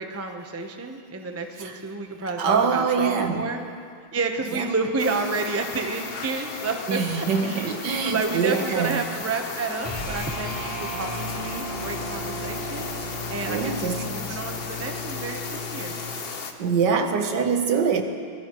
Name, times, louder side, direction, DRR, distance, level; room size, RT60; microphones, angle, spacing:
voice 1, 0.0-3.6 4.1-15.9, right 3 dB, 15° right, 4 dB, 0.4 m, -30 dB
voice 2, 2.3-3.5 4.5-4.7 6.9-9.0 13.5-14.4 16.6-18.0, right 6 dB, 65° right, 5 dB, 1.7 m, -24 dB
sound 1, 5.0-16.5, left 5 dB, 45° left, 0.8 m, -35 dB
sound 2, 9.8-16.2, left 1 dB, 10° left, 4.3 m, -35 dB
24.5 x 18.5 x 3.1 m, 2.2 s
omnidirectional pair, 2.0 m